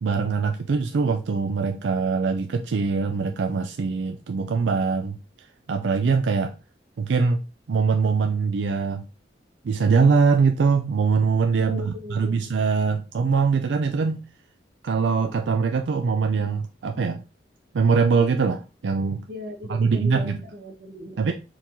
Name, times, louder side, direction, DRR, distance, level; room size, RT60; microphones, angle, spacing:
voice 1, 0.0-5.2 5.7-6.5 7.0-7.4 7.7-9.0 9.6-14.2 14.8-17.2 17.7-19.2 19.7-20.4 21.2-21.3, right 5 dB, 80° right, 0.4 m, -22 dB
voice 2, 11.5-12.4 19.3-21.3, left 1 dB, 55° right, 1.0 m, -38 dB
4.5 x 3.7 x 2.6 m
head